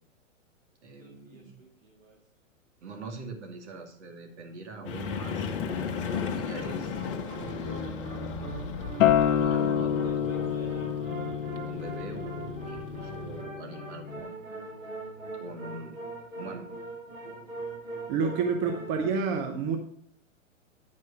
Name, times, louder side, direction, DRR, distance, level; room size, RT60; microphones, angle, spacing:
voice 1, 0.8-1.5 2.8-5.5 6.0-7.0 7.4-8.0 8.3-8.5 9.1-10.7 11.6-14.6 15.4-16.0 16.3-16.7, right 3 dB, 60° right, 3 dB, 2.3 m, -43 dB
sound 1, 1.0-2.2 4.8-19.1, right 2 dB, 85° right, 2.2 m, -42 dB
snowmobile idle and pull away slow rattly, 4.8-13.4, left 6 dB, 45° left, 1.0 m, -36 dB
Acoustic guitar, 9.0-14.2, left 9 dB, 75° left, 0.7 m, -28 dB
voice 2, 18.1-19.8, right 5 dB, 30° right, 4 dB, 0.9 m, -28 dB
9.6 x 4.4 x 5.9 m, 0.62 s
hypercardioid pair, 115°, 39 cm